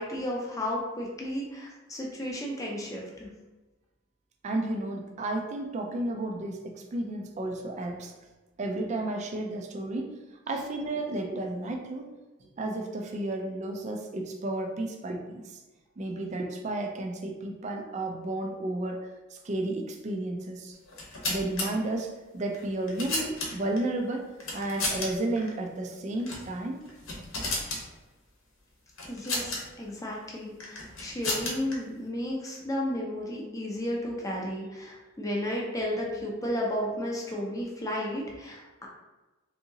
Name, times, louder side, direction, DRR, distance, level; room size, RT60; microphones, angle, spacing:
voice 1, 0.0-3.3 29.1-38.9, left 1 dB, 15° left, -2 dB, 0.6 m, -33 dB
voice 2, 4.4-8.1 8.6-10.1 10.5-12.1 12.4-15.6 16.0-19.0 19.3-20.8 21.3-26.8, right 2 dB, 35° right, 2 dB, 0.3 m, -32 dB
sound 1, 20.9-21.7 22.5-23.8 24.4-25.1 25.4-25.5 26.2-26.5 26.8-27.8 29.0-29.6 30.6-31.7, left 2 dB, 75° left, 0.9 m, -32 dB
3.6 x 2.8 x 2.7 m, 1.2 s
head